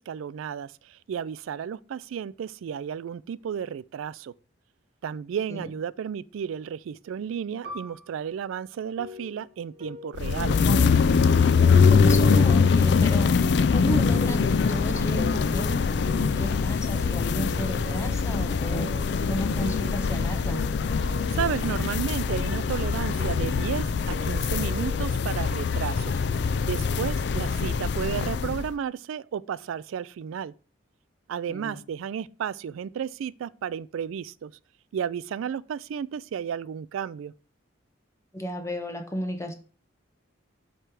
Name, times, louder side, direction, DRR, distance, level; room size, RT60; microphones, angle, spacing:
voice 1, 0.0-4.3 5.0-10.6 21.3-30.5 31.3-34.5 34.9-37.3, right 8 dB, 80° right, 0.3 m, -33 dB
Piano, 7.6-12.7 13.0-13.2 14.0-14.3, equal, 50° right, 1.5 m, -48 dB
sound 1, 9.0-25.1, left 1 dB, 30° right, 1.3 m, -43 dB
sound 2, 10.1-28.7, left 5 dB, 55° left, 0.4 m, -23 dB
voice 2, 11.8-13.3 13.7-18.9 19.3-20.6 31.5-31.8 38.3-39.5, equal, 15° left, 0.9 m, -33 dB
7.7 x 3.3 x 6.0 m
head